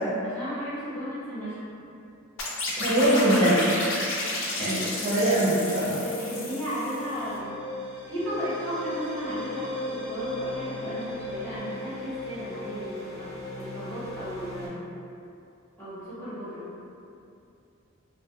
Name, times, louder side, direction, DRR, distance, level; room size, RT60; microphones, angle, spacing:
voice 1, 0.2-1.6 5.8-7.6 8.1-13.3 13.5-14.9 15.8-16.6, equal, 10° left, -14 dB, 1.0 m, -34 dB
sound 1, 2.4-7.2, left 2 dB, 60° left, 0.4 m, -31 dB
voice 2, 2.8-3.7 4.6-6.0, right 1 dB, 35° right, -11 dB, 0.4 m, -23 dB
sound 2, 6.2-14.7, left 2 dB, 85° right, 0.8 m, -37 dB
2.2 x 2.1 x 2.8 m, 2.6 s
head